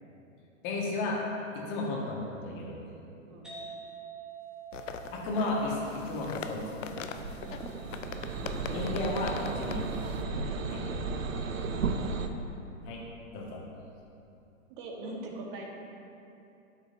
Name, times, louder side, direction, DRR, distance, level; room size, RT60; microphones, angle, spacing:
voice 1, 0.6-2.8 5.1-6.9 8.7-9.8 10.7-10.9 12.8-13.0 13.3-13.6, left 2 dB, 40° left, -3 dB, 1.6 m, -33 dB
sound 1, 3.4-10.9, right 6 dB, ahead, 1.3 m, -49 dB
sound 2, 4.7-10.2, left 7 dB, 70° left, 0.6 m, -42 dB
sound 3, 6.2-12.3, right 4 dB, 80° right, 0.6 m, -35 dB
voice 2, 14.7-15.6, right 2 dB, 40° right, 0 dB, 1.2 m, -41 dB
12.0 x 4.9 x 2.6 m, 2.8 s
hypercardioid pair, 115°, 39 cm